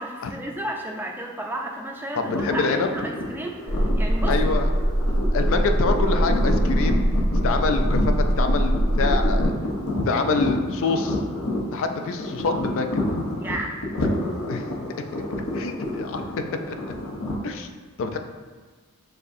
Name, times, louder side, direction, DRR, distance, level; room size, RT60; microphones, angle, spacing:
voice 1, 0.0-4.4 13.4-13.7, right 1 dB, 10° right, 0 dB, 0.4 m, -32 dB
sound 1, 2.2-17.4, left 1 dB, 75° left, 0.8 m, -29 dB
voice 2, 2.2-2.9 4.3-4.7 5.3-7.0 7.4-9.5 10.0-11.2 11.7-13.0 14.5-14.7 15.5-16.2 16.7-16.8 17.4-17.7 18.0-18.2, left 4 dB, 60° left, 6 dB, 0.4 m, -26 dB
sound 2, 3.7-9.5, equal, 70° right, 0.6 m, -22 dB
6.6 x 2.6 x 2.6 m, 1.4 s
head